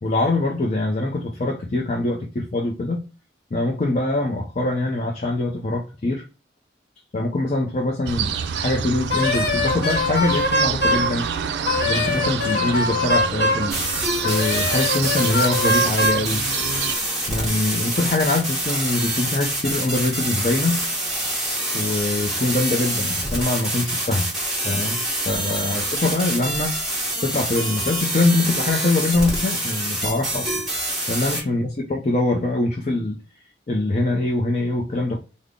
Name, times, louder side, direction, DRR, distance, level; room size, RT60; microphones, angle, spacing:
voice 1, 0.0-3.0 3.5-6.2 7.1-11.3 11.8-13.8 14.2-16.4 17.3-20.8 21.7-24.3 24.6-26.8 27.2-30.6 31.1-33.2 33.7-35.2, left 2 dB, 40° left, 0.5 m, -23 dB
sound 1, 8.1-17.0, right 7 dB, 75° right, 0.3 m, -28 dB
Wind instrument woodwind instrument, 9.1-11.1 11.6-13.7 14.2-16.2, left 2 dB, 65° left, 0.9 m, -22 dB
sound 2, 13.7-31.4, right 1 dB, ahead, 1.1 m, -26 dB
3.6 x 2.1 x 3.4 m
head